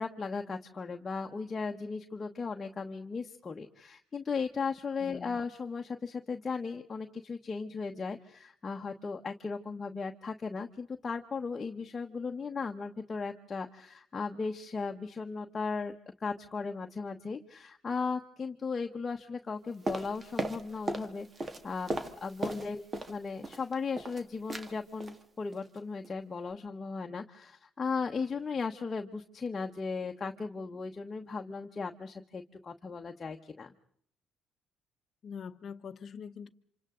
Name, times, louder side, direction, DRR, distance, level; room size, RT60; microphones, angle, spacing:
voice 1, 0.0-15.9 16.2-21.9 22.2-22.8 23.1-33.7, left 4 dB, 30° left, 1.1 m, -36 dB
voice 2, 5.0-5.4 22.4-22.7 35.2-36.5, left 6 dB, 55° left, 0.9 m, -43 dB
sound 1, 19.9-21.1 21.4-23.2 23.4-24.2 24.5-24.7 25.0-25.2 25.5-25.8 26.0-26.1, right 2 dB, 30° right, 1.7 m, -36 dB
28.5 x 26.5 x 3.8 m
cardioid pair, 90°, 0 cm